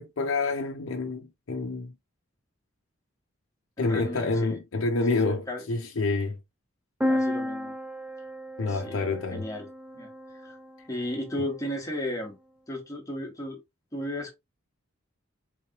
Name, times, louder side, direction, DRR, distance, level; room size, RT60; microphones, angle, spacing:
voice 1, 0.0-1.9 3.8-6.4 8.6-9.5, left 3 dB, 70° left, 0.6 m, -28 dB
voice 2, 3.8-4.6 5.1-5.6 7.0-7.7 8.7-9.7 9.9-10.6 10.9-12.4 12.7-13.6 13.9-14.3, left 1 dB, 15° left, 1.2 m, -35 dB
sound 1, 7.0-10.7, left 1 dB, 5° right, 0.4 m, -32 dB
3.7 x 3.1 x 2.8 m
head